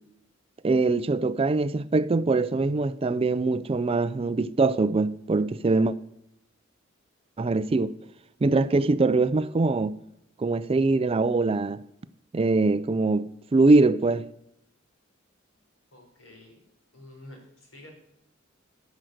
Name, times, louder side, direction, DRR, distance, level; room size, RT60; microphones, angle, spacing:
voice 1, 0.6-5.9 7.4-7.9 8.4-9.9 10.4-11.8 12.3-14.3, right 3 dB, 30° right, 0.4 m, -23 dB
voice 2, 15.9-16.6 16.9-17.9, left 1 dB, 85° left, 4.2 m, -48 dB
13.0 x 6.3 x 7.8 m
head